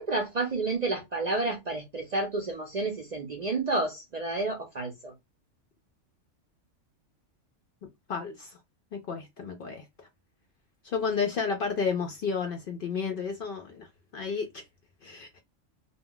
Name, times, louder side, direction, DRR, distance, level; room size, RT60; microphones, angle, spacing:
voice 1, 0.0-5.1, right 2 dB, 50° right, 0.5 m, -30 dB
voice 2, 8.1-8.6 8.9-9.8 10.8-13.9 14.1-14.6 15.0-15.3, left 5 dB, 60° left, 0.6 m, -31 dB
2.3 x 2.2 x 3.6 m
omnidirectional pair, 1.3 m